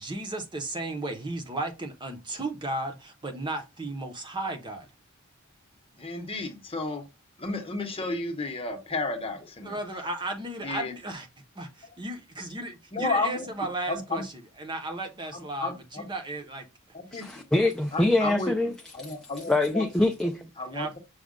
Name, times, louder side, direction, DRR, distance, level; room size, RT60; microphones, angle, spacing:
voice 1, 0.0-4.9 9.6-11.3 11.6-14.3 14.6-16.7 20.7-20.9, right 2 dB, 20° right, 0.7 m, -34 dB
voice 2, 5.9-7.0 7.4-9.8 10.6-10.9 12.9-14.2 15.3-16.1 16.9-17.4 17.9-18.5 18.9-19.8 20.6-21.0, left 3 dB, 25° left, 0.9 m, -32 dB
voice 3, 17.1-18.7 19.0-19.1 19.5-20.5, left 2 dB, 5° left, 0.3 m, -24 dB
6.2 x 2.3 x 3.7 m
head